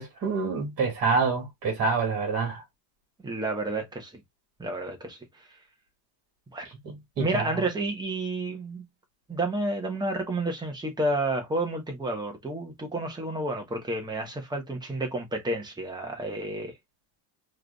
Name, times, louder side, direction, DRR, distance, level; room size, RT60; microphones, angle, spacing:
voice 1, 0.0-2.6 6.8-7.5, right 4 dB, 30° right, 2.7 m, -27 dB
voice 2, 3.2-4.1 4.6-5.2 6.5-6.7 7.2-8.8 9.3-16.7, right 2 dB, 10° right, 1.2 m, -30 dB
4.7 x 3.3 x 2.2 m
cardioid pair, 165°, 50 cm